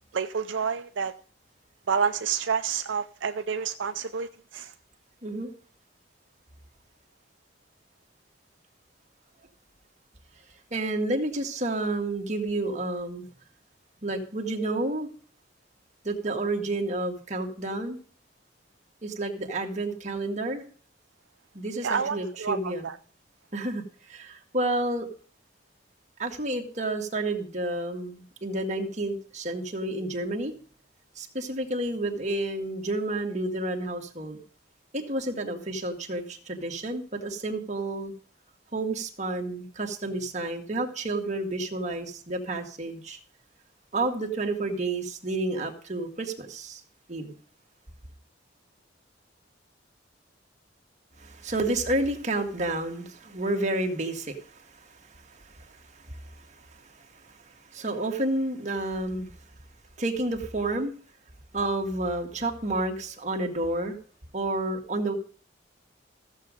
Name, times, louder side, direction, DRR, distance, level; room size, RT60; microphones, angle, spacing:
voice 1, 0.1-1.1 1.9-4.7 21.8-23.0, right 6 dB, 75° right, 0.5 m, -29 dB
voice 2, 10.7-13.3 14.0-15.1 16.0-18.0 19.0-20.6 21.5-22.9 23.5-25.1 26.2-30.5 31.2-34.4 34.9-38.1 38.7-43.2 43.9-46.8 47.1-47.3 51.2-59.3 60.0-60.9 61.5-64.0 64.3-65.1, right 2 dB, 40° right, 1.8 m, -30 dB
14.5 x 7.4 x 5.1 m
head